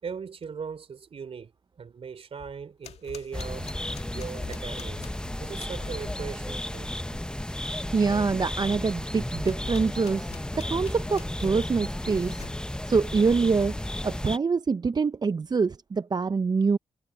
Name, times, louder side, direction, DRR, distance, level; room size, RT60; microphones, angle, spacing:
voice 1, 0.0-1.5 1.8-3.7 4.1-5.1 5.4-6.9, right 6 dB, 60° right, 3.5 m, -39 dB
sound 1, 2.4-6.3 9.4-12.6 13.4-13.9, left 7 dB, 70° left, 2.3 m, -46 dB
sound 2, 3.3-14.4, left 1 dB, 5° left, 0.8 m, -33 dB
voice 2, 7.9-12.4 12.8-13.7 14.0-16.8, right 4 dB, 35° right, 0.5 m, -25 dB
supercardioid pair, 50°, 11 cm